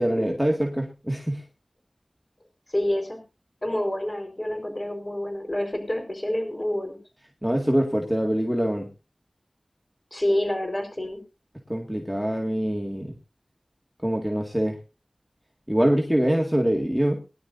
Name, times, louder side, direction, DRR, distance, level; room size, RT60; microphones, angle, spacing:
voice 1, 0.0-1.4 7.4-8.9 11.7-13.2 14.0-14.8 15.7-17.2, equal, ahead, 1 dB, 2.0 m, -24 dB
voice 2, 2.7-3.2 3.6-7.0 10.1-11.2, left 1 dB, 40° left, 4 dB, 4.5 m, -27 dB
21.0 x 11.5 x 2.7 m, 0.29 s
wide cardioid pair, 50°, 0 cm